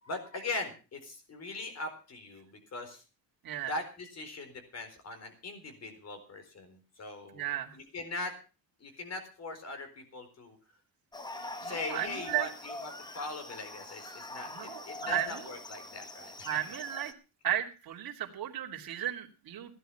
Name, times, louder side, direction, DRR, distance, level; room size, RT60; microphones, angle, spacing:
voice 1, 0.0-3.0 3.7-8.4 8.8-10.6 11.6-16.6, left 2 dB, 40° left, 7 dB, 4.3 m, -41 dB
voice 2, 7.3-7.8 11.4-12.5 14.5-15.5 16.5-17.1 17.4-19.8, right 12 dB, 60° right, 0 dB, 2.9 m, -35 dB
sound 1, 11.1-17.1, left 2 dB, 10° left, 1.0 m, -43 dB
16.5 x 11.0 x 5.7 m, 0.35 s
cardioid pair, 165°, 41 cm